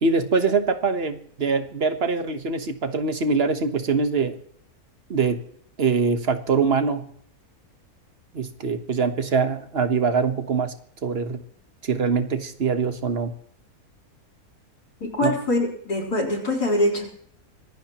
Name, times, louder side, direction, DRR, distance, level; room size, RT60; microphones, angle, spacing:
voice 1, 0.0-4.4 5.1-5.4 5.8-7.1 8.3-10.7 11.0-11.4 11.8-13.3 15.2-15.4, right 5 dB, 40° right, 8 dB, 1.4 m, -23 dB
voice 2, 15.0-17.0, left 1 dB, 90° left, -1 dB, 4.6 m, -23 dB
25.0 x 16.0 x 3.0 m, 0.63 s
omnidirectional pair, 1.6 m